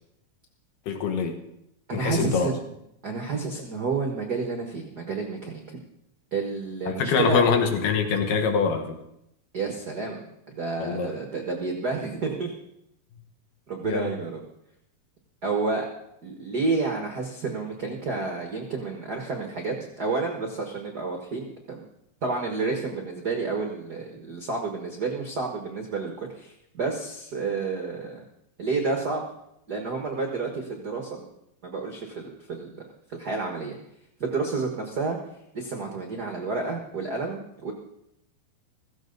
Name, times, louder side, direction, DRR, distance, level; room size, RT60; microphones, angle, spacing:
voice 1, 0.9-1.4 1.9-2.5 6.9-9.0 10.8-11.1 13.8-14.1, left 5 dB, 70° left, 5 dB, 2.8 m, -24 dB
voice 2, 1.9-2.7 3.0-5.8 6.3-7.4 9.5-10.2 10.5-12.5 13.7-14.4 15.4-15.9 16.2-21.8 22.2-28.2 28.6-29.2 29.7-31.2 31.6-32.8 33.1-33.7 34.2-35.2 35.5-37.7, right 4 dB, 75° right, 2 dB, 0.9 m, -30 dB
15.5 x 15.0 x 4.0 m, 0.80 s
omnidirectional pair, 4.2 m